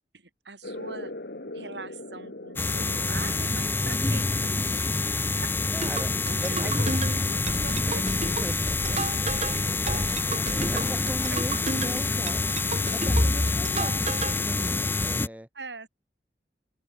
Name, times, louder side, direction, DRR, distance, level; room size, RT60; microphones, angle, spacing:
voice 1, 0.1-1.1 1.5-4.8 5.4-5.5 5.9-10.1 10.7-10.8 11.3-11.4 11.8-12.2 15.5-15.9, right 3 dB, 80° right, 7.0 m, -43 dB
sound 1, 0.6-7.8, left 1 dB, 65° left, 2.0 m, -43 dB
sound 2, 2.6-15.3, left 3 dB, 10° left, 0.3 m, -26 dB
voice 2, 5.7-6.1 6.4-7.0 8.3-8.9 10.7-12.4 12.9-14.0 14.4-15.5, equal, 10° right, 2.0 m, -38 dB
sound 3, 5.8-14.4, right 3 dB, 40° right, 3.7 m, -34 dB
open air
head